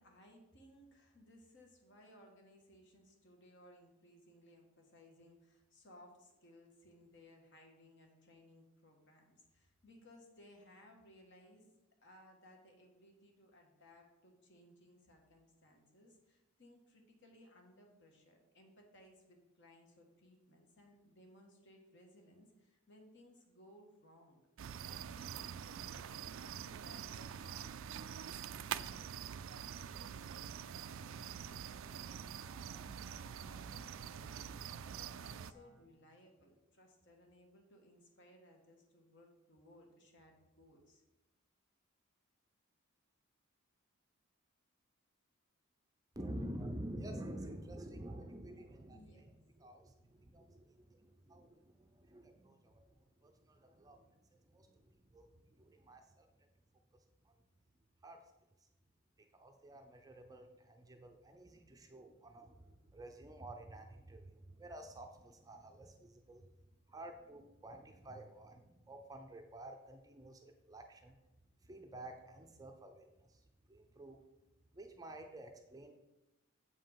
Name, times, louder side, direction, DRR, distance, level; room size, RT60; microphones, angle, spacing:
voice 1, 0.0-24.4 24.8-41.0 48.9-49.3 71.0-71.1, left 1 dB, 55° left, 2 dB, 1.7 m, -62 dB
sound 1, 24.6-35.5, right 8 dB, 60° right, 0.3 m, -45 dB
Bowed string instrument, 30.4-36.6, left 3 dB, 70° left, 1.9 m, -66 dB
voice 2, 46.2-49.3 49.6-56.5 56.9-57.3 58.0-58.2 58.6-58.7 59.3-66.4 66.9-71.2 71.6-74.2 74.7-75.9, right 1 dB, 15° right, 4 dB, 0.6 m, -50 dB
7.9 x 5.4 x 5.9 m, 0.98 s
head